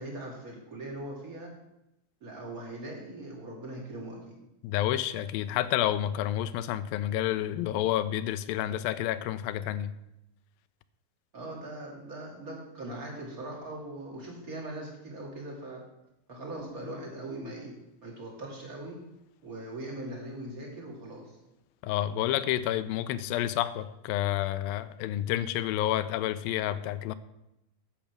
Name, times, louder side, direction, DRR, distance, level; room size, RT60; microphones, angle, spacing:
voice 1, 0.0-1.5 2.2-4.4 11.3-15.8 16.3-19.0 19.4-21.4, right 1 dB, 25° right, -2 dB, 2.7 m, -40 dB
voice 2, 4.6-9.9 21.8-27.1, left 12 dB, 85° left, 14 dB, 2.3 m, -29 dB
10.5 x 8.4 x 6.1 m, 0.88 s
omnidirectional pair, 4.1 m